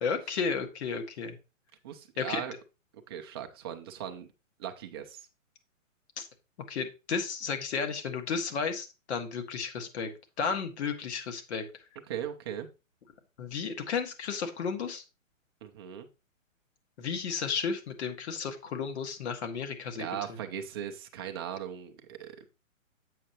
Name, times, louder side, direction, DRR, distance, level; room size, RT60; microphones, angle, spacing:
voice 1, 0.0-1.4 2.2-2.4 6.2-6.3 6.7-10.1 10.4-11.6 13.4-15.0 17.0-20.1, left 5 dB, 55° left, 6 dB, 1.6 m, -33 dB
voice 2, 1.8-2.6 3.1-4.3 4.6-5.3 12.1-12.7 15.6-16.1 19.9-22.4, right 9 dB, 20° right, 5 dB, 0.5 m, -38 dB
7.6 x 6.5 x 2.9 m, 0.29 s
hypercardioid pair, 140°, 40 cm